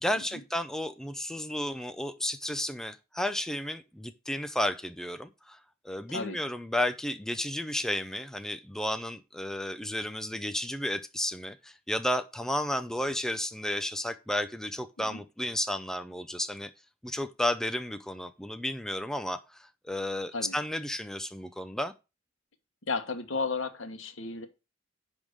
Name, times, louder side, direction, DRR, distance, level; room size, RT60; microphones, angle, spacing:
voice 1, 0.0-5.6 5.8-16.7 17.0-21.9, left 1 dB, 5° left, 0.5 m, -32 dB
voice 2, 6.1-6.4 15.0-15.2 20.3-20.5 22.9-24.5, left 4 dB, 80° left, 1.4 m, -33 dB
10.5 x 3.7 x 6.4 m
head